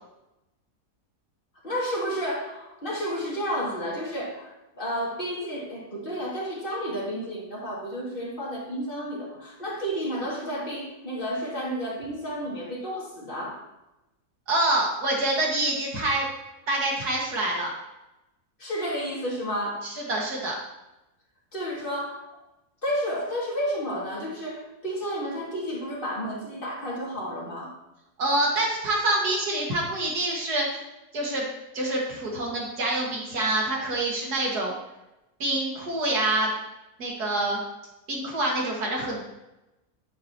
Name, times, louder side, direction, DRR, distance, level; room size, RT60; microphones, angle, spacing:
voice 1, 1.6-13.6 18.6-19.9 21.5-22.2 22.8-27.7, equal, 30° left, -5 dB, 2.6 m, -31 dB
voice 2, 14.5-16.2 16.7-17.7 19.8-20.6 28.2-30.8 31.1-31.5 31.7-34.7 35.4-36.5 37.0-37.6 38.1-39.2, right 2 dB, 70° right, -2 dB, 2.5 m, -26 dB
9.7 x 8.3 x 3.0 m, 0.96 s
omnidirectional pair, 1.7 m